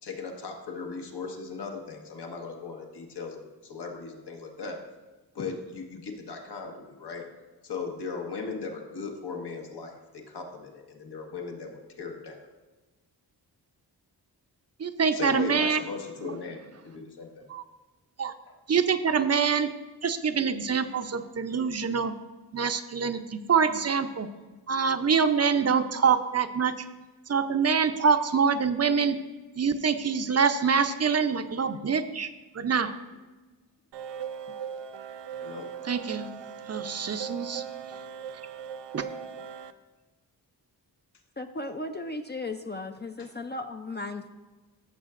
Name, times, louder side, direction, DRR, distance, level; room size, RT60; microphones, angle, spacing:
voice 1, 0.0-4.8 5.3-7.2 7.6-12.4 15.1-17.5 18.5-18.6 23.9-24.0 35.4-35.7, left 4 dB, 70° left, 2 dB, 1.5 m, -38 dB
voice 2, 14.8-15.8 17.5-17.6 18.2-18.3 18.7-19.7 20.0-22.1 22.5-24.3 24.7-26.7 27.3-29.2 29.6-32.9 35.9-36.3 36.7-37.6 38.9-39.1, right 6 dB, 40° right, 9 dB, 0.6 m, -25 dB
sound 1, 33.9-39.7, right 8 dB, 85° right, 0.5 m, -39 dB
voice 3, 41.4-44.4, left 2 dB, 25° left, 6 dB, 0.4 m, -36 dB
15.0 x 6.8 x 2.5 m, 1.2 s
cardioid pair, 80°, 41 cm